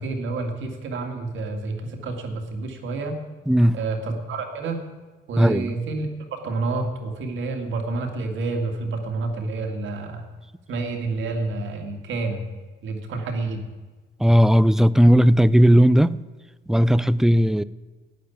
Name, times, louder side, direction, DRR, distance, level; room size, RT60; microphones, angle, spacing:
voice 1, 0.0-3.2 3.7-4.8 5.3-10.2 10.7-12.4 12.8-13.6, right 3 dB, 75° right, 2.3 m, -29 dB
voice 2, 3.5-3.8 5.4-5.8 14.2-16.2 16.7-17.6, equal, ahead, 0.4 m, -16 dB
11.5 x 9.6 x 8.6 m
cardioid pair, 90°, 20 cm